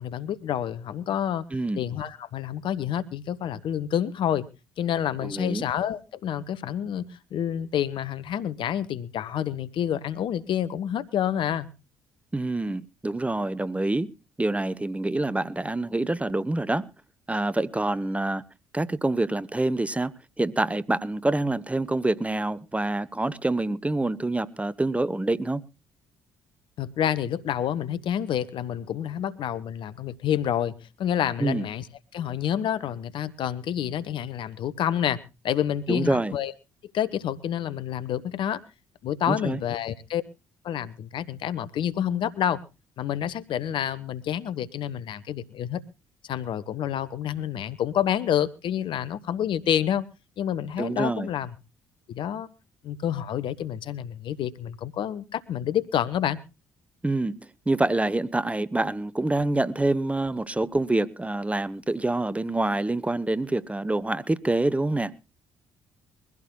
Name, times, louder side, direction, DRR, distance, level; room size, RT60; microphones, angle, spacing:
voice 1, 0.0-1.4 1.8-4.5 4.8-11.7 26.8-31.9 32.1-35.2 35.4-36.5 36.9-38.6 39.0-40.2 40.6-42.6 43.0-45.8 46.3-50.0 50.4-51.5 52.1-52.5 52.8-56.4, left 10 dB, 55° left, 1.0 m, -28 dB
voice 2, 5.2-5.6 12.3-14.1 14.4-16.9 17.3-18.4 18.7-25.6 31.4-31.6 35.9-36.3 39.3-39.6 50.8-51.3 57.0-65.1, right 2 dB, 15° right, 0.9 m, -26 dB
23.0 x 16.0 x 2.3 m
hypercardioid pair, 50°, 10 cm